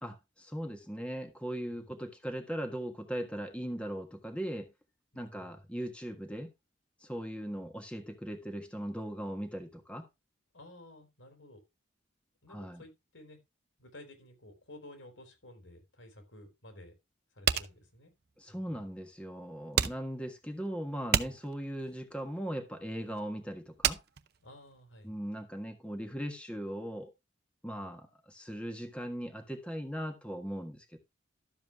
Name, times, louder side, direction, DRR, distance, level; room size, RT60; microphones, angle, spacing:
voice 1, 0.0-4.7 5.1-6.5 7.0-10.1 12.5-12.8 18.4-24.0 25.0-27.1 27.6-31.0, equal, 5° left, 1.5 m, -39 dB
voice 2, 5.1-5.6 7.5-7.7 10.5-11.6 12.4-13.4 13.8-16.9 17.3-18.1 18.5-18.8 21.2-21.3 24.4-25.1 27.6-27.9, left 1 dB, 85° left, 4.2 m, -53 dB
sound 1, 17.5-25.1, right 8 dB, 55° right, 0.7 m, -33 dB
12.5 x 7.4 x 3.5 m
head